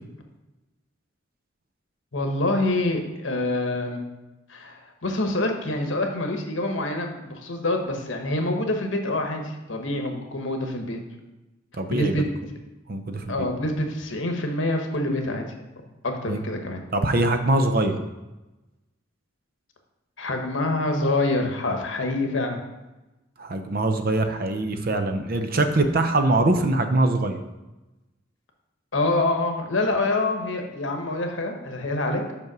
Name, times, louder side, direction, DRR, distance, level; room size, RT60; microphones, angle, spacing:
voice 1, 2.1-4.0 4.5-11.0 11.9-12.2 13.3-15.4 16.0-16.8 20.2-22.6 28.9-32.2, left 2 dB, 75° left, 4 dB, 1.2 m, -26 dB
voice 2, 11.7-12.2 12.9-13.5 16.3-16.4 16.9-18.0 23.4-27.4, right 2 dB, 50° right, 7 dB, 0.7 m, -23 dB
5.5 x 5.3 x 6.1 m, 1.0 s
head